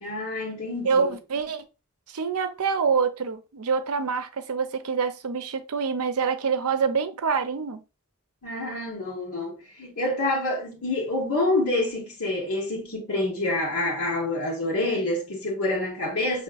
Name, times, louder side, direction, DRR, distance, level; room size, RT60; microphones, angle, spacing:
voice 1, 0.0-1.0 8.4-16.4, left 2 dB, 70° left, 1.3 m, -27 dB
voice 2, 0.9-1.6 2.1-7.8, right 5 dB, 75° right, 0.6 m, -26 dB
5.0 x 3.1 x 2.4 m
head